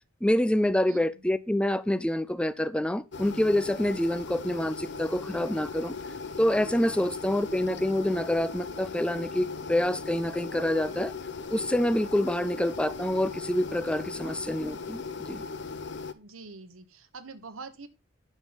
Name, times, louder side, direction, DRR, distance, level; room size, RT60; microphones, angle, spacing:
voice 1, 0.2-6.0 6.4-11.1 11.5-15.4, left 1 dB, 5° left, 0.4 m, -27 dB
sound 1, 3.1-16.1, left 4 dB, 55° left, 0.7 m, -38 dB
voice 2, 7.0-7.4 16.1-17.9, right 4 dB, 85° right, 1.2 m, -46 dB
10.0 x 6.4 x 4.0 m
head